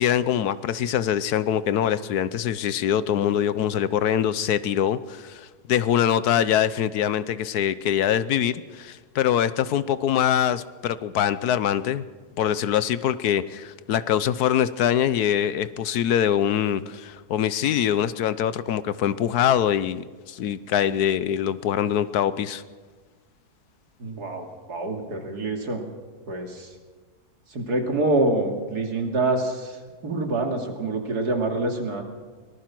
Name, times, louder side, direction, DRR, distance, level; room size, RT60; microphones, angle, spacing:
voice 1, 0.0-12.0 12.4-22.6, left 10 dB, 80° left, 15 dB, 1.3 m, -23 dB
voice 2, 24.0-25.8 26.3-26.7 27.5-32.0, right 2 dB, 80° right, 3 dB, 3.1 m, -26 dB
23.5 x 19.5 x 6.1 m, 1.4 s
omnidirectional pair, 1.7 m